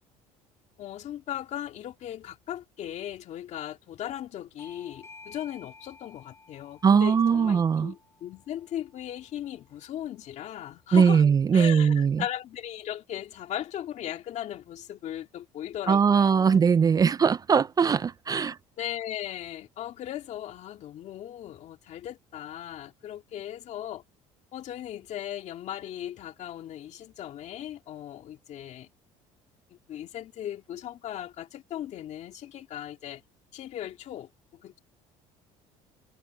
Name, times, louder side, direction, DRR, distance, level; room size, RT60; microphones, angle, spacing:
voice 1, 0.8-11.2 11.5-16.6 18.3-18.5 18.8-24.0 24.5-28.9 29.7-33.2 33.5-34.8, left 11 dB, 55° left, 2.6 m, -38 dB
Bell / Doorbell, 4.6-9.8, left 3 dB, 20° left, 3.9 m, -53 dB
voice 2, 6.8-7.9 10.9-12.2 15.9-18.6, right 6 dB, 25° right, 0.5 m, -21 dB
supercardioid pair, 105°, 14 cm